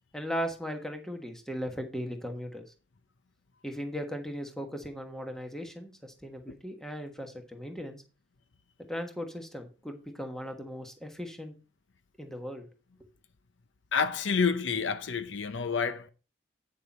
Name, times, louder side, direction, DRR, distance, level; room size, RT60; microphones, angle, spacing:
voice 1, 0.1-2.6 3.6-8.0 8.9-11.5 12.2-12.7, equal, 5° left, 1.3 m, -37 dB
voice 2, 13.9-16.1, left 5 dB, 80° left, 0.7 m, -28 dB
9.0 x 6.7 x 4.2 m
head